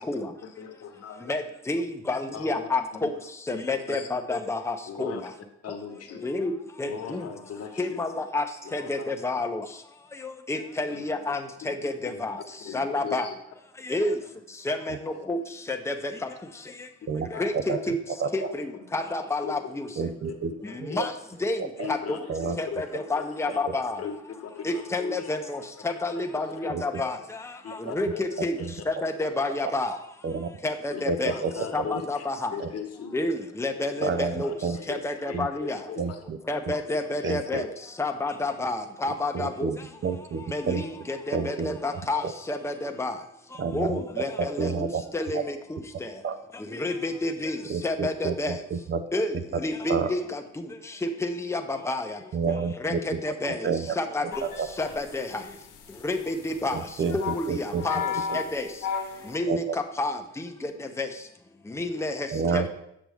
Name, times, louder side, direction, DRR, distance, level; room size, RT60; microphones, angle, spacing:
voice 1, 0.4-1.3 2.1-3.6 3.9-4.1 4.9-5.3 5.6-6.3 6.8-8.0 8.8-8.9 10.9-11.7 12.0-12.2 12.6-13.3 14.0-14.1 14.9-15.4 16.0-16.1 17.0-17.8 18.7-18.9 19.4-21.1 21.8-23.6 24.0-25.6 26.2-26.7 27.6-28.8 29.2-29.3 30.9-33.1 34.4-36.2 37.2-37.4, left 7 dB, 55° left, 5 dB, 1.1 m, -40 dB
voice 2, 1.3-3.1 3.5-5.2 6.2-6.5 6.8-7.2 7.8-8.5 8.7-9.6 10.2-12.4 12.7-13.3 13.8-14.1 14.7-15.4 15.7-15.9 17.4-18.0 18.3-18.7 18.9-19.9 20.8-21.1 21.4-21.6 21.9-22.2 22.6-24.0 24.6-27.2 27.9-28.6 28.9-30.0 30.6-31.3 31.7-32.5 33.1-34.5 34.9-35.8 36.5-37.7 38.0-39.7 40.5-43.1 43.7-46.1 46.7-47.6 47.8-48.6 49.1-50.4 51.0-52.2 52.8-53.7 54.0-54.2 54.8-55.4 56.0-56.8 57.1-58.0 58.3-58.7 59.3-59.6 60.0-61.1 61.7-62.3 62.5-62.6, left 2 dB, 10° left, 4 dB, 0.7 m, -29 dB
voice 3, 17.5-18.3 20.0-20.5 20.8-20.9 21.8-21.9 22.3-22.6 23.7-23.8 26.7-26.8 28.4-28.7 30.2-30.5 31.1-31.5 32.6-32.7 34.0-34.3 34.6-34.8 35.3-35.5 36.0-36.4 37.2-37.6 39.3-40.8 41.3-42.3 43.6-45.0 45.3-45.4 46.2-46.4 47.6-49.0 49.9-50.1 52.3-53.2 53.5-54.0 54.4-54.7 56.7-57.8 58.3-58.4 59.5-59.8 62.3-62.7, right 5 dB, 40° right, 10 dB, 0.5 m, -29 dB
sound 1, 54.3-59.4, left 7 dB, 85° left, 1.0 m, -35 dB
7.6 x 6.0 x 3.5 m, 0.78 s
cardioid pair, 90°, 30 cm